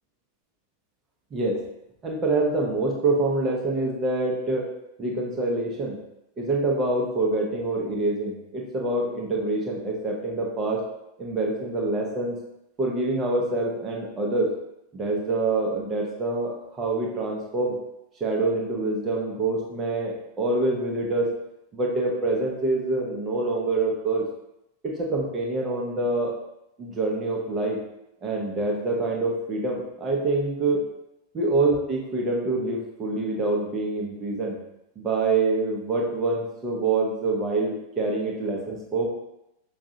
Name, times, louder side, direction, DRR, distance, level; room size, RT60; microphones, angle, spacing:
voice 1, 2.0-4.7 5.0-6.0 6.4-10.8 11.2-12.4 12.8-14.5 14.9-17.8 18.2-21.3 21.7-24.3 24.8-26.3 26.8-27.8 28.2-30.8 31.3-34.6 35.0-39.1, right 2 dB, 25° right, -2 dB, 1.0 m, -26 dB
6.0 x 2.5 x 2.7 m, 0.85 s
figure-of-eight pair, 90°, 0 cm